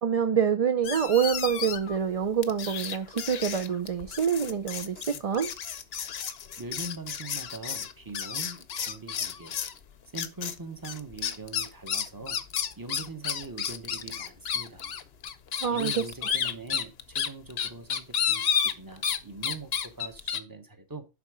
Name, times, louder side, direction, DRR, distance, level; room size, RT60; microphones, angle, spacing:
voice 1, 0.0-5.5 15.6-16.0, right 7 dB, 40° right, 0.6 m, -26 dB
sound 1, 0.8-2.0 2.4-9.8 10.2-10.6 10.8-19.2 19.4-20.4, left 7 dB, 65° left, 1.0 m, -31 dB
voice 2, 6.6-9.6 10.1-12.4 12.8-14.9 15.7-21.1, right 3 dB, 20° right, 1.1 m, -42 dB
11.0 x 4.1 x 4.8 m
omnidirectional pair, 1.2 m